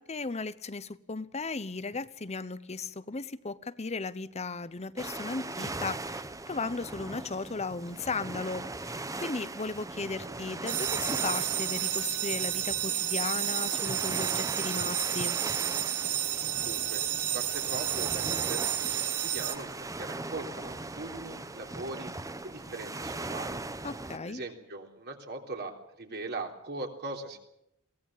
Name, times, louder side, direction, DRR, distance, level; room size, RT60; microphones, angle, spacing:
voice 1, 0.0-15.4 23.8-24.4, left 3 dB, 30° left, 16 dB, 0.9 m, -36 dB
sound 1, 5.0-24.2, right 2 dB, 15° right, 0.9 m, -39 dB
sound 2, 10.7-19.5, right 12 dB, 80° right, 1.6 m, -31 dB
voice 2, 16.6-23.6 24.2-27.4, right 2 dB, 50° right, 3 dB, 3.5 m, -40 dB
23.0 x 18.0 x 7.4 m, 0.81 s
head